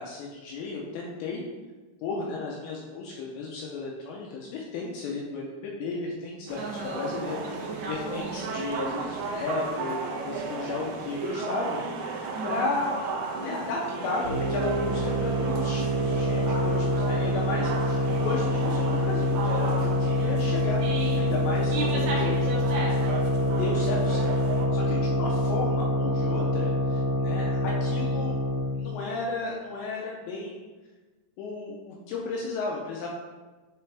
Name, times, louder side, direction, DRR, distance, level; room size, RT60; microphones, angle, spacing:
voice 1, 0.0-1.4 2.0-11.8 12.4-12.9 13.4-20.8 21.1-22.4 23.5-28.4 28.8-30.6 31.4-33.1, left 3 dB, 80° left, -2 dB, 2.6 m, -34 dB
voice 2, 6.5-7.0 7.4-8.6 12.3-12.7 20.8-21.3 21.7-23.1, right 2 dB, 70° right, -5 dB, 3.3 m, -34 dB
sound 1, 6.5-24.7, right 4 dB, 85° right, 2.3 m, -35 dB
sound 2, 14.2-28.8, left 1 dB, 50° right, 3.4 m, -26 dB
9.9 x 3.4 x 3.4 m, 1.3 s
omnidirectional pair, 5.6 m